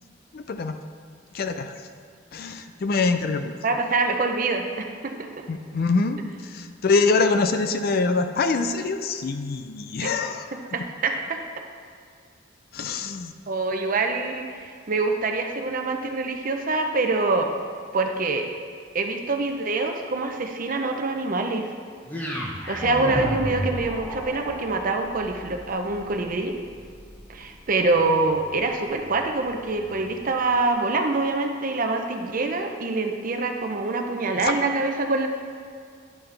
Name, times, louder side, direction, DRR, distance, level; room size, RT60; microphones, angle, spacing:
voice 1, 0.3-0.8 1.3-1.7 2.3-3.5 5.5-10.5 12.7-13.3 34.4-34.5, left 4 dB, 50° left, 8 dB, 0.4 m, -24 dB
voice 2, 3.6-5.4 10.0-10.1 10.7-11.4 13.5-17.5 17.9-18.5 18.9-21.7 22.7-26.6 27.3-35.3, right 3 dB, 45° right, 4 dB, 0.6 m, -25 dB
sound 1, 22.1-30.3, equal, 10° left, 0.9 m, -34 dB
10.5 x 5.8 x 3.3 m, 2.2 s
head